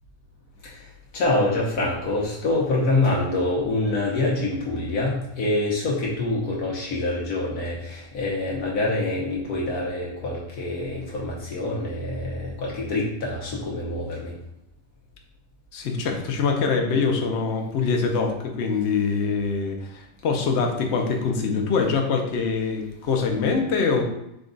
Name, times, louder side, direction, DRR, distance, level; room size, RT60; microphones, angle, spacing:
voice 1, 1.1-14.3, left 2 dB, 75° left, -4 dB, 1.4 m, -26 dB
voice 2, 15.7-24.0, left 5 dB, 55° left, 3 dB, 0.8 m, -24 dB
5.1 x 2.4 x 3.8 m, 0.84 s
omnidirectional pair, 1.6 m